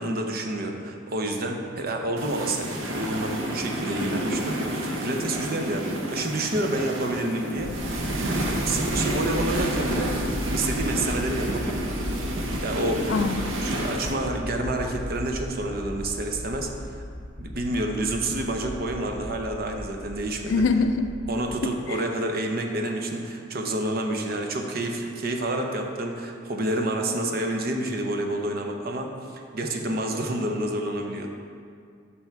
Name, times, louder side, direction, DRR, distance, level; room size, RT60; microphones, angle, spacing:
voice 1, 0.0-8.0 8.6-10.2 10.5-11.9 12.6-13.1 13.6-17.0 17.4-20.7 21.3-31.3, right 1 dB, 50° right, 3 dB, 0.7 m, -29 dB
sound 1, 2.2-14.1, right 1 dB, 80° right, 0.8 m, -30 dB
sound 2, 7.6-21.5, equal, 20° left, 0.8 m, -36 dB
voice 2, 13.1-13.6 20.5-21.1 21.6-22.0, left 4 dB, 65° left, 9 dB, 0.4 m, -24 dB
6.0 x 5.8 x 4.5 m, 2.3 s
head